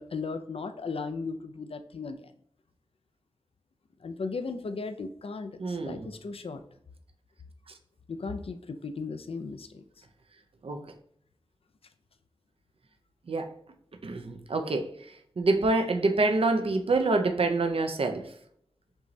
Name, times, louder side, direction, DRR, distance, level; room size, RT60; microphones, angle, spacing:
voice 1, 0.0-2.3 4.0-6.6 8.1-9.8, left 4 dB, 85° left, 8 dB, 0.4 m, -36 dB
voice 2, 5.6-6.1 10.6-10.8 13.3-13.5 14.0-14.9 15.4-18.3, right 3 dB, 85° right, 6 dB, 0.5 m, -26 dB
5.3 x 3.0 x 2.7 m, 0.67 s
wide cardioid pair, 55°, 10 cm